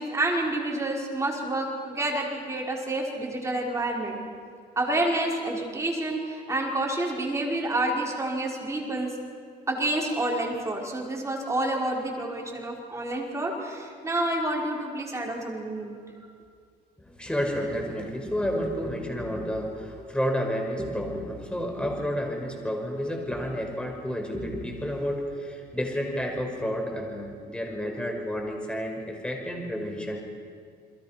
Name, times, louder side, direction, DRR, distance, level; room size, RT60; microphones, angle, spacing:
voice 1, 0.0-4.2 4.7-9.1 9.7-16.0, right 1 dB, 15° right, -1 dB, 5.2 m, -28 dB
voice 2, 17.0-30.3, equal, 5° left, 2 dB, 5.3 m, -30 dB
30.0 x 22.0 x 6.0 m, 2.1 s
cardioid pair, 110°, 17 cm